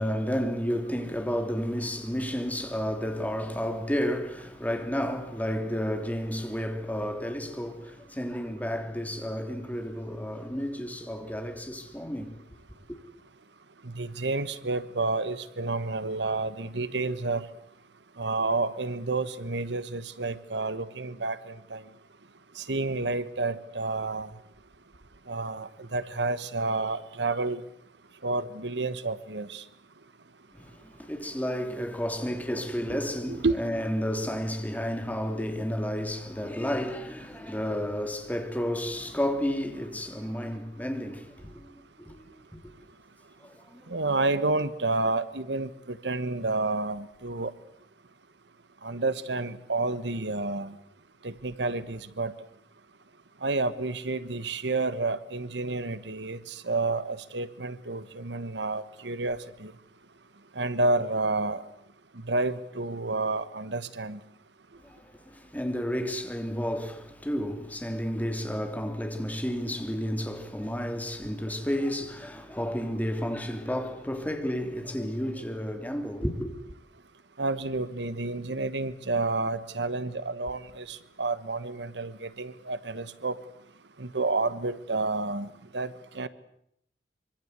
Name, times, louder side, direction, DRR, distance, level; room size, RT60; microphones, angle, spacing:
voice 1, 0.0-12.3 30.5-41.7 42.0-42.2 43.4-43.9 64.8-76.5, equal, 10° left, 3.2 m, -31 dB
voice 2, 13.8-17.5 18.2-21.8 22.5-24.3 25.3-27.6 28.2-29.6 33.3-33.6 43.9-47.5 48.8-50.7 51.2-52.3 53.4-59.7 60.5-61.6 62.2-64.2 77.4-83.4 84.0-85.5 85.7-86.3, right 3 dB, 75° right, 1.3 m, -30 dB
25.0 x 25.0 x 8.2 m
head